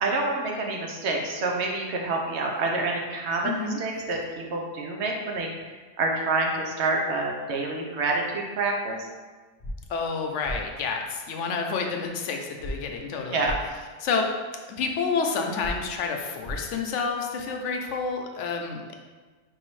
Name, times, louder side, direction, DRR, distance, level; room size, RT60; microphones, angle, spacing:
voice 1, 0.0-3.5 3.8-5.5 6.0-9.1 13.3-13.6, right 3 dB, 75° right, 0 dB, 0.9 m, -27 dB
voice 2, 3.4-3.8 9.9-13.5 14.0-14.3 14.8-18.9, left 5 dB, 90° left, 3 dB, 0.9 m, -29 dB
sound 1, 9.6-9.7 10.4-10.6 12.6-12.7 13.4-13.6 15.6-15.7 16.4-16.6, equal, 35° left, 0.9 m, -33 dB
4.8 x 2.7 x 3.0 m, 1.4 s
omnidirectional pair, 1.2 m